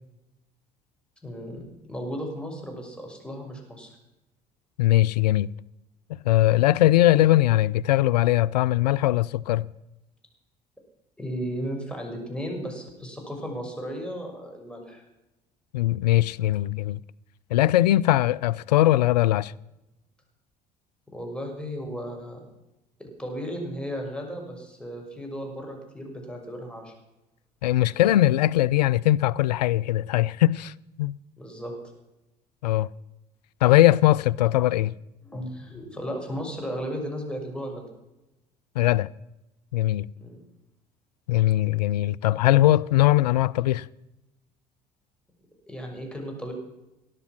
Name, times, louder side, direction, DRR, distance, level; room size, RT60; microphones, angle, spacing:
voice 1, 1.2-3.9 11.2-15.0 21.1-22.4 23.0-26.9 31.4-31.7 35.2-37.8 40.2-40.4 45.7-46.5, equal, 5° left, 6.5 m, -35 dB
voice 2, 4.8-5.5 6.2-9.7 15.7-17.0 17.5-19.5 27.6-31.2 32.6-32.9 33.6-34.9 38.8-39.1 39.7-40.1 41.3-43.9, left 15 dB, 75° left, 0.4 m, -20 dB
18.5 x 12.0 x 6.1 m
figure-of-eight pair, 60°, 21 cm